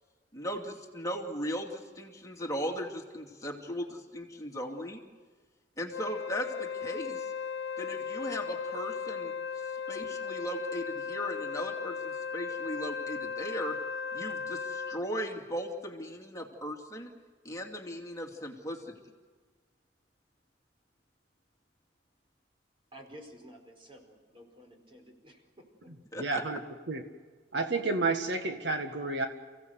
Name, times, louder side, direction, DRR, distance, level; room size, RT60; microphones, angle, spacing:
voice 1, 0.3-5.0 5.8-7.3 7.8-9.3 9.9-13.8 14.1-17.1 17.4-19.0 26.1-26.4, equal, 20° left, 1 dB, 2.6 m, -37 dB
Wind instrument woodwind instrument, 5.9-15.1, left 6 dB, 75° left, 1.1 m, -36 dB
voice 2, 22.9-25.9, equal, 30° right, 3 dB, 4.6 m, -52 dB
voice 3, 26.2-26.6 26.9-27.0 27.5-29.3, right 3 dB, 65° right, 5 dB, 1.7 m, -30 dB
29.5 x 16.5 x 8.1 m, 1.4 s
head